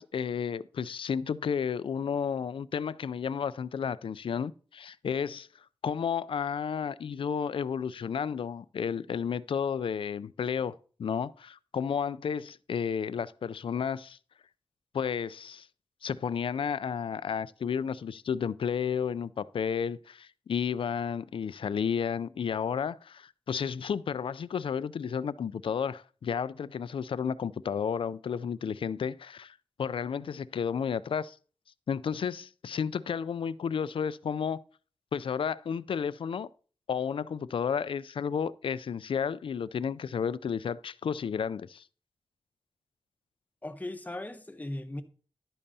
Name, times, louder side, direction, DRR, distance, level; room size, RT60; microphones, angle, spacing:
voice 1, 0.0-5.5 5.8-10.7 11.0-14.2 14.9-15.7 16.0-31.4 31.9-34.6 35.1-36.5 36.9-41.8, left 7 dB, 70° left, 0.3 m, -32 dB
voice 2, 43.6-45.0, left 1 dB, 15° left, 0.8 m, -38 dB
11.0 x 8.6 x 2.7 m
wide cardioid pair, 80°, 9 cm